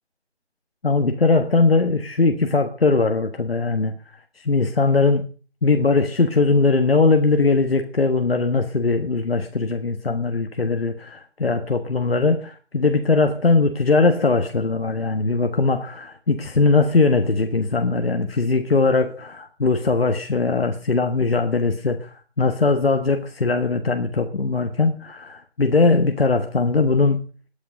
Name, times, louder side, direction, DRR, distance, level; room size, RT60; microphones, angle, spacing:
voice 1, 0.8-3.9 4.4-5.3 5.6-27.2, left 3 dB, 60° left, 6 dB, 1.5 m, -20 dB
18.0 x 9.3 x 5.0 m, 0.38 s
figure-of-eight pair, 170°, 34 cm